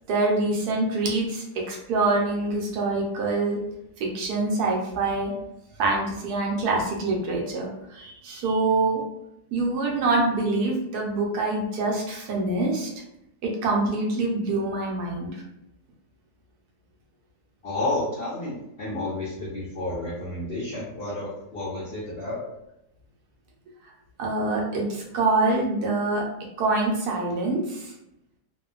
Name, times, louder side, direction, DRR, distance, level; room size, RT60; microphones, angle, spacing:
voice 1, 0.1-3.6 4.0-5.3 5.8-9.0 9.5-12.9 13.4-15.3 24.2-26.2 26.6-27.9, right 3 dB, 70° right, -1 dB, 1.1 m, -25 dB
voice 2, 17.6-22.4, left 2 dB, 75° left, -6 dB, 0.5 m, -31 dB
2.9 x 2.1 x 2.4 m, 0.83 s
omnidirectional pair, 1.8 m